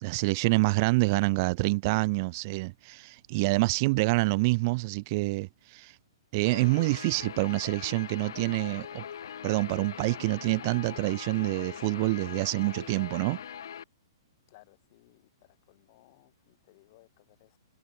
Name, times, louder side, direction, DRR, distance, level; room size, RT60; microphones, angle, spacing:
voice 1, 0.0-5.9 6.3-9.0 9.4-13.4, right 25 dB, 40° right, 0.9 m, -27 dB
Guitar, 6.5-13.8, left 8 dB, 60° left, 1.0 m, -41 dB
voice 2, 14.5-17.6, left 21 dB, 40° left, 4.7 m, -61 dB
figure-of-eight pair, 115°, 2 cm